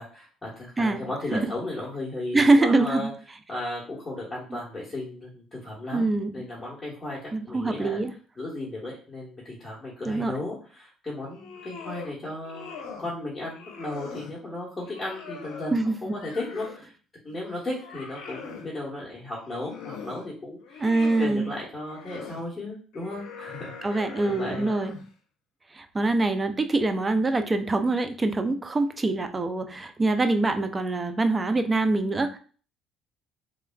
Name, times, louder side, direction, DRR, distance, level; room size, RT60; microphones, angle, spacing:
voice 1, 0.0-3.1 3.5-8.0 8.4-16.9 17.2-20.8 21.2-24.7, left 2 dB, 20° left, -7 dB, 1.1 m, -35 dB
voice 2, 2.3-3.1 4.5-4.6 5.9-6.3 7.3-8.1 10.1-10.3 15.7-16.1 20.8-21.5 23.8-24.9 25.7-32.4, right 2 dB, 25° right, 8 dB, 0.4 m, -24 dB
sound 1, 11.2-12.1 12.4-13.1 13.5-14.4 14.8-16.9 17.3-18.7 19.4-20.2 20.6-21.3 21.8-22.4 22.9-25.1, left 5 dB, 80° left, 0.6 m, -42 dB
3.2 x 2.3 x 2.2 m, 0.40 s
supercardioid pair, 70°, 0 cm